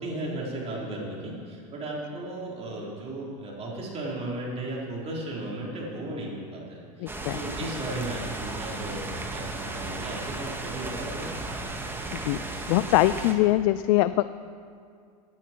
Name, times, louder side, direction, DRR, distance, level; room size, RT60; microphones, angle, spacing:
voice 1, 0.0-11.3, right 1 dB, 30° right, -4 dB, 4.0 m, -35 dB
voice 2, 7.0-7.4 11.9-12.4 12.7-14.3, left 16 dB, 60° left, 14 dB, 0.4 m, -23 dB
sound 1, 7.1-13.3, right 2 dB, 10° right, 1.5 m, -35 dB
16.5 x 10.0 x 4.6 m, 2.3 s
hypercardioid pair, 100°, 19 cm